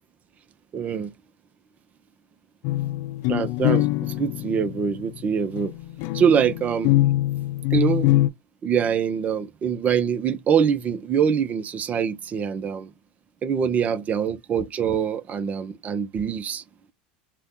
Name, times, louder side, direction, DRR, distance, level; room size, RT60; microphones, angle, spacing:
voice 1, 0.7-1.1 3.3-5.7 6.1-6.9 7.7-8.1 8.6-12.9 13.4-16.6, right 7 dB, 35° right, 0.6 m, -24 dB
sound 1, 2.6-8.3, left 17 dB, 60° left, 0.3 m, -23 dB
2.8 x 2.2 x 3.6 m
hypercardioid pair, 100°, 5 cm